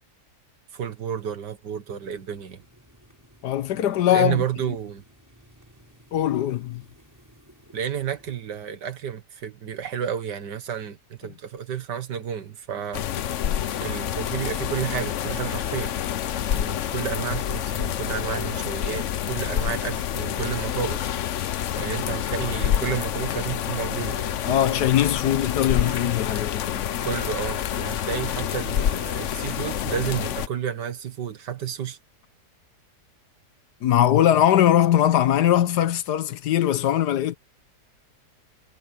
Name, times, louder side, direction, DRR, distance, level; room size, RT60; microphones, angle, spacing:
voice 1, 0.7-2.6 4.1-5.0 7.7-13.1 13.8-15.9 16.5-21.1 21.8-24.2 27.0-32.0, right 8 dB, 80° right, 2.1 m, -31 dB
sound 1, 2.0-8.4, equal, 10° right, 7.2 m, -55 dB
voice 2, 3.4-4.4 6.1-6.8 24.4-26.9 33.8-37.4, left 11 dB, 75° left, 1.4 m, -21 dB
sound 2, 12.9-30.5, left 10 dB, 60° left, 0.9 m, -28 dB
Child speech kid speaking, 21.3-21.7 22.5-23.3 23.8-26.9, right 8 dB, 60° right, 2.0 m, -45 dB
omnidirectional pair, 1.8 m